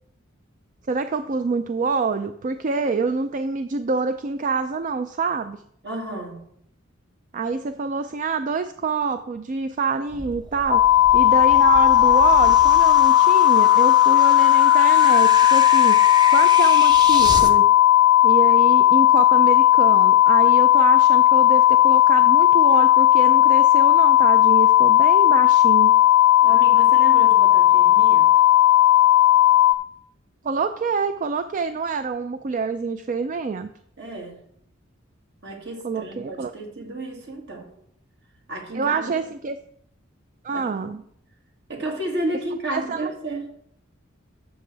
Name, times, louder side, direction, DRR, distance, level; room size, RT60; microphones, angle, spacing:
voice 1, 0.9-5.6 7.3-16.0 16.3-17.7 18.2-26.0 30.4-33.7 35.8-36.5 38.7-39.5 40.4-41.0 42.7-43.1, right 4 dB, 40° right, 10 dB, 0.4 m, -26 dB
voice 2, 5.8-6.5 26.4-28.3 34.0-34.4 35.4-37.7 38.5-39.1 40.5-41.0 41.7-43.5, right 1 dB, 60° right, 1 dB, 2.1 m, -32 dB
sound 1, 10.1-17.5, right 2 dB, 20° right, 0.8 m, -31 dB
sound 2, 10.7-29.7, left 13 dB, 70° left, 0.5 m, -15 dB
12.5 x 6.7 x 3.3 m, 0.70 s
head